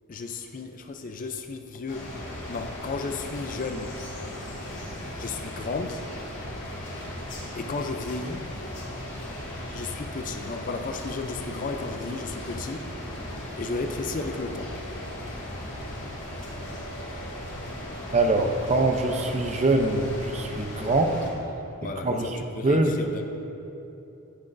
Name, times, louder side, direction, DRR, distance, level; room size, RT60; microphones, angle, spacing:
voice 1, 0.1-2.1 2.5-3.9 5.2-6.0 7.5-8.4 9.7-12.8 13.6-14.7 20.8-20.9 21.8-23.2, left 3 dB, 35° left, 6 dB, 0.4 m, -34 dB
sound 1, 1.9-21.3, left 1 dB, 55° left, 1.8 m, -37 dB
voice 2, 18.1-21.2 22.0-22.4 22.6-22.9, right 2 dB, 30° right, 4 dB, 0.6 m, -23 dB
16.5 x 6.1 x 2.6 m, 2.8 s
head